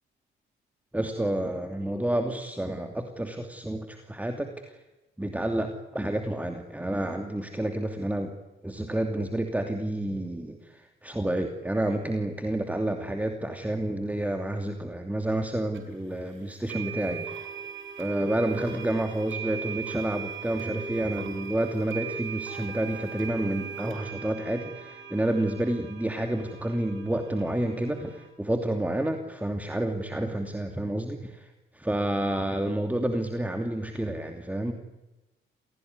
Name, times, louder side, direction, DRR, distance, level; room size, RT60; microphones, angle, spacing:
voice 1, 0.9-4.8 5.2-8.3 8.6-17.5 18.0-34.7, right 1 dB, 5° right, 5 dB, 2.8 m, -29 dB
sound 1, 15.7-15.8 16.7-28.3, right 6 dB, 75° right, 5.8 m, -39 dB
28.5 x 17.5 x 9.6 m, 1.1 s
cardioid pair, 90°, 20 cm